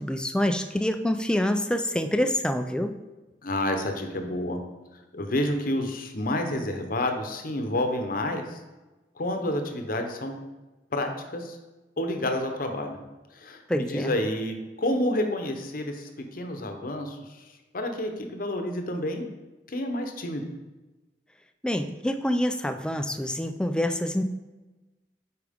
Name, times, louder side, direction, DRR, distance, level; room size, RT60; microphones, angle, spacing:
voice 1, 0.0-3.0 13.7-14.1 21.6-24.2, left 1 dB, 5° left, 7 dB, 0.3 m, -26 dB
voice 2, 3.4-4.6 5.1-8.6 9.2-10.3 10.9-11.6 12.0-13.0 13.3-17.4 17.7-19.2 19.7-20.5, left 1 dB, 50° left, 5 dB, 0.8 m, -29 dB
8.5 x 4.7 x 3.6 m, 1.1 s
head